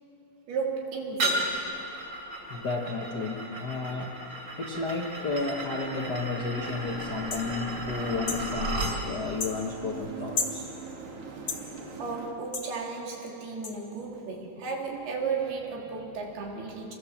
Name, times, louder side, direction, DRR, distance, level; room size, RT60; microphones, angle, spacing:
voice 1, 0.5-1.6 12.0-16.9, right 5 dB, 85° right, 0 dB, 4.9 m, -34 dB
sound 1, 1.2-9.0, right 1 dB, 25° right, 4.5 m, -34 dB
voice 2, 2.5-4.2 4.6-10.7, left 3 dB, 80° left, 0 dB, 0.9 m, -32 dB
sound 2, 6.6-12.3, right 4 dB, 45° right, 2.6 m, -42 dB
sound 3, 7.3-7.5 8.3-8.5 9.4-9.6 10.4-10.6 11.5-11.6 12.5-12.7 13.6-13.7, left 5 dB, 50° left, 2.2 m, -31 dB
26.5 x 22.5 x 7.3 m, 2.8 s
omnidirectional pair, 4.4 m